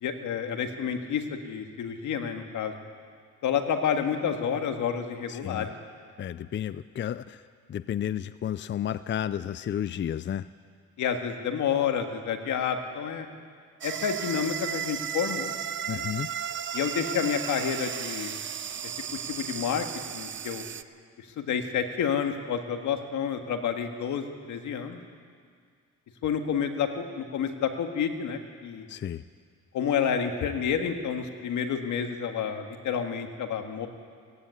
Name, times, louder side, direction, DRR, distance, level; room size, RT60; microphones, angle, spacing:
voice 1, 0.0-2.7 3.4-5.7 11.0-13.3 13.8-15.5 15.9-16.1 16.7-18.4 19.3-19.9 20.1-20.6 21.4-25.0 26.2-28.9 29.7-33.9, left 7 dB, 75° left, 5 dB, 1.9 m, -29 dB
voice 2, 5.3-5.7 6.2-7.4 7.7-10.5 15.9-16.3 28.9-29.2, left 10 dB, 40° left, 15 dB, 0.5 m, -32 dB
sound 1, 13.8-20.8, right 8 dB, 40° right, 0.7 m, -34 dB
17.0 x 16.0 x 9.6 m, 2.1 s
cardioid pair, 90°, 30 cm